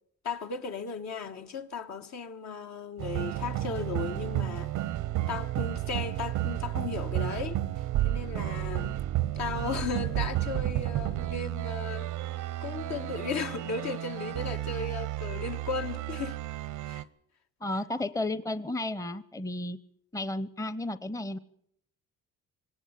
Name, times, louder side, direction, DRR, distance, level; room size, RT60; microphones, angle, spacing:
voice 1, 0.2-4.7 5.3-9.0 9.3-16.4 16.8-17.0, left 5 dB, 65° left, 1.6 m, -36 dB
sound 1, 3.0-17.0, right 14 dB, 85° right, 0.8 m, -32 dB
voice 2, 17.6-19.8 20.1-21.4, left 2 dB, 10° left, 0.8 m, -33 dB
19.5 x 18.0 x 8.3 m
cardioid pair, 90°, 30 cm